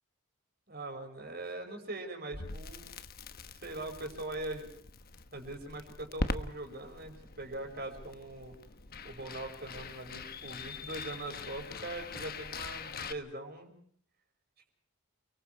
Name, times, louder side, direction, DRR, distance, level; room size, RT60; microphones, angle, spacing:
voice 1, 0.7-2.8 3.5-4.7 5.3-8.5 9.0-13.7, right 2 dB, 45° right, 4 dB, 5.7 m, -41 dB
Crackle, 2.3-13.1, left 3 dB, 45° left, 1.2 m, -42 dB
29.5 x 24.0 x 4.7 m, 0.63 s
head